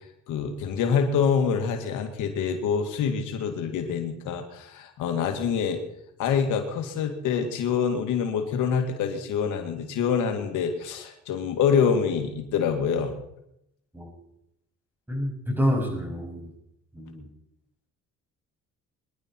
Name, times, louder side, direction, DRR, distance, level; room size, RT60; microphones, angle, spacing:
voice 1, 0.3-5.8 6.2-13.2, left 6 dB, 90° left, 5 dB, 2.2 m, -26 dB
voice 2, 15.1-16.5 16.9-17.3, equal, 5° right, -1 dB, 7.2 m, -28 dB
23.5 x 11.0 x 4.6 m, 0.81 s
cardioid pair, 90°, 30 cm